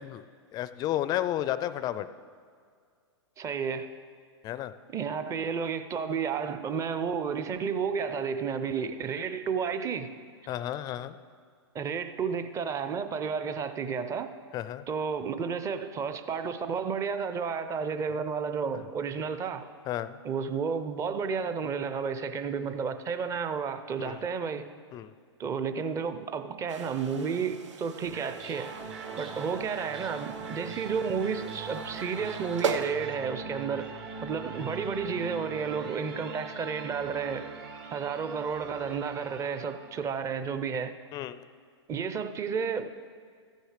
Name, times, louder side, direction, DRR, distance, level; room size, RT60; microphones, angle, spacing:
voice 1, 0.5-2.1 4.4-4.7 10.5-11.2 14.5-14.9 19.9-20.2 24.0-24.2 24.9-25.1 41.1-41.4, left 12 dB, 25° left, 0.4 m, -32 dB
voice 2, 3.4-3.9 4.9-10.2 11.7-14.3 14.9-19.7 20.2-24.7 25.4-28.7 29.2-37.5 37.9-40.9 41.9-42.9, right 6 dB, 20° right, 0.6 m, -32 dB
sound 1, 26.7-32.9, right 5 dB, 85° right, 0.8 m, -38 dB
sound 2, 27.9-40.1, right 5 dB, 60° right, 1.7 m, -41 dB
14.5 x 6.4 x 4.9 m
hypercardioid pair, 120°, 15 cm